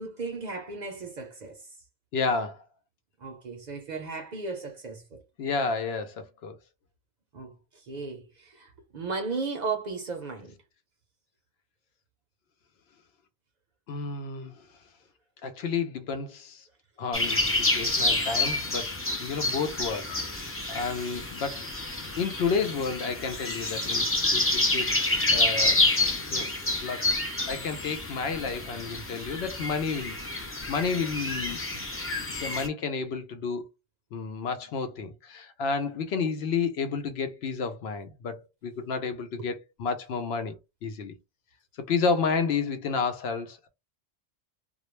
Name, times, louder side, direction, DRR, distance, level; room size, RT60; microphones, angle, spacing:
voice 1, 0.0-1.7 3.2-5.2 7.3-10.6 39.4-39.5, right 4 dB, 55° right, 0.6 m, -35 dB
voice 2, 2.1-2.6 5.4-6.6 13.9-14.6 15.4-16.7 17.0-18.9 19.2-21.6 22.2-24.0 24.3-25.9 26.3-26.5 26.8-27.1 27.5-31.8 32.4-33.6 34.1-40.6 40.8-41.1 41.9-43.7, left 5 dB, 75° left, 0.8 m, -31 dB
sound 1, 17.1-32.7, left 2 dB, 20° left, 0.3 m, -28 dB
2.2 x 2.1 x 3.0 m
omnidirectional pair, 1.1 m